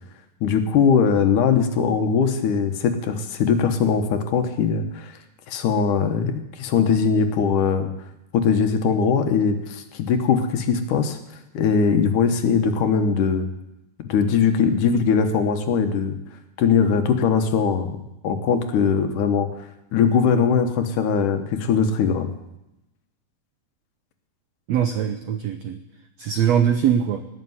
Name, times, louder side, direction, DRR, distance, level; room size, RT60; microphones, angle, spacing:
voice 1, 0.4-5.2 5.5-7.9 8.3-11.2 11.5-13.5 14.1-16.2 16.6-18.0 18.2-19.5 19.9-22.3, left 6 dB, 70° left, 7 dB, 2.5 m, -20 dB
voice 2, 24.7-25.8 26.2-27.2, right 9 dB, 85° right, 8 dB, 1.5 m, -21 dB
18.5 x 6.7 x 9.4 m, 0.91 s
omnidirectional pair, 4.2 m